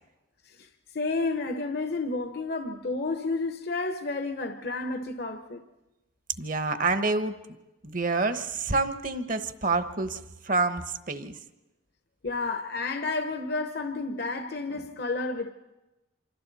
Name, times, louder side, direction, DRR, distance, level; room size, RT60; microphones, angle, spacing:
voice 1, 0.9-5.6 12.2-15.5, left 3 dB, 55° left, 0.9 m, -31 dB
voice 2, 6.4-7.4 7.8-11.3, right 3 dB, 45° right, 1.0 m, -28 dB
27.0 x 25.5 x 4.1 m
head